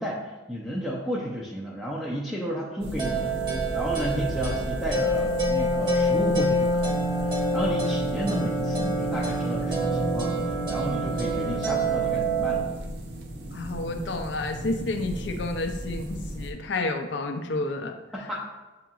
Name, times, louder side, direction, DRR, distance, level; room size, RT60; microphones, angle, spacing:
voice 1, 0.0-10.4 10.7-12.7 18.1-18.4, equal, ahead, -7 dB, 0.4 m, -32 dB
sound 1, 2.8-16.5, right 1 dB, 55° right, 0.6 m, -35 dB
sound 2, 3.0-12.6, right 1 dB, 25° right, 0.9 m, -26 dB
voice 2, 13.5-17.9, left 2 dB, 65° left, 6 dB, 0.5 m, -30 dB
7.6 x 2.8 x 2.4 m, 1.2 s
head